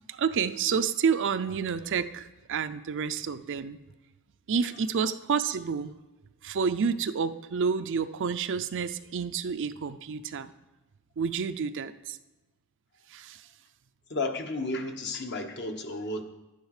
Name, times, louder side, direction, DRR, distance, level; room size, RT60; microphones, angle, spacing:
voice 1, 0.1-3.8 4.5-5.9 6.4-10.5 11.2-12.2 13.1-13.4, right 6 dB, 55° right, 11 dB, 0.5 m, -29 dB
voice 2, 14.1-16.2, left 2 dB, 50° left, 5 dB, 1.2 m, -32 dB
11.5 x 9.5 x 4.9 m, 1.1 s
head